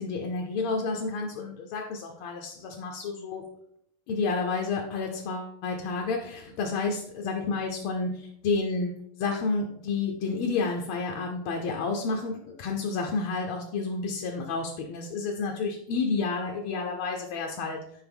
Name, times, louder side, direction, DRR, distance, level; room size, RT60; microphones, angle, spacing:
voice 1, 0.0-3.4 4.1-17.8, left 4 dB, 80° left, 1 dB, 1.7 m, -30 dB
7.9 x 5.2 x 3.5 m, 0.73 s
omnidirectional pair, 2.4 m